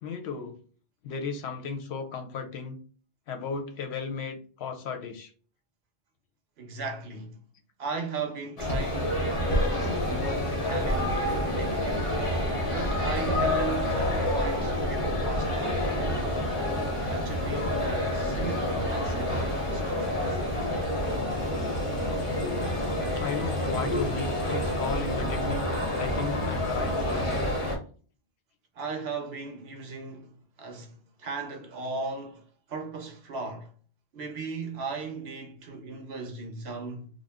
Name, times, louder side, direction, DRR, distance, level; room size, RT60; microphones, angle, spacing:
voice 1, 0.0-0.6 1.0-2.8 3.3-5.3 23.1-25.6 26.0-27.3, left 5 dB, 70° left, 0.8 m, -35 dB
voice 2, 6.6-7.4 7.8-12.1 12.7-16.4 17.1-20.4 28.7-33.7 34.1-37.1, right 4 dB, 70° right, 0.8 m, -37 dB
sound 1, 8.6-27.8, left 1 dB, 35° left, 0.7 m, -28 dB
2.4 x 2.1 x 3.4 m
omnidirectional pair, 1.2 m